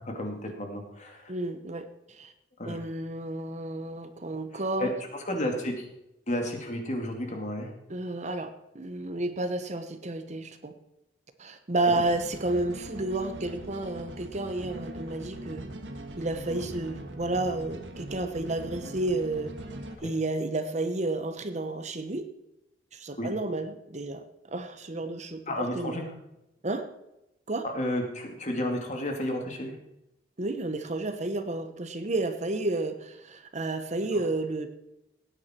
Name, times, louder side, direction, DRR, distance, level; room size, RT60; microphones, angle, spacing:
voice 1, 0.0-1.3 2.6-2.8 4.8-4.9 5.3-5.8 6.3-7.7 16.5-16.7 20.0-20.1 23.2-23.3 25.5-26.0 27.7-29.7, left 1 dB, 40° left, 2 dB, 2.5 m, -32 dB
voice 2, 1.3-2.3 2.6-4.9 7.9-8.5 8.7-10.7 11.4-15.6 16.2-19.5 20.0-22.3 22.9-26.0 26.6-26.9 27.5-27.6 30.4-34.7, right 2 dB, 40° right, 9 dB, 1.0 m, -31 dB
sound 1, 12.0-20.0, right 1 dB, 90° right, 1.5 m, -41 dB
17.5 x 9.7 x 4.4 m, 0.88 s
head